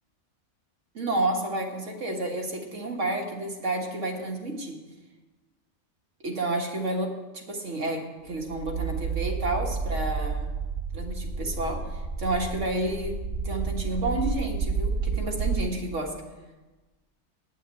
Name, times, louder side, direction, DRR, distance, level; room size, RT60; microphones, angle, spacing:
voice 1, 0.9-4.8 6.2-10.5 10.9-13.2 13.4-16.2, right 2 dB, 75° right, 2 dB, 1.9 m, -30 dB
sound 1, 8.3-15.6, right 5 dB, 50° right, 1.0 m, -30 dB
9.6 x 6.5 x 8.9 m, 1.2 s
omnidirectional pair, 1.3 m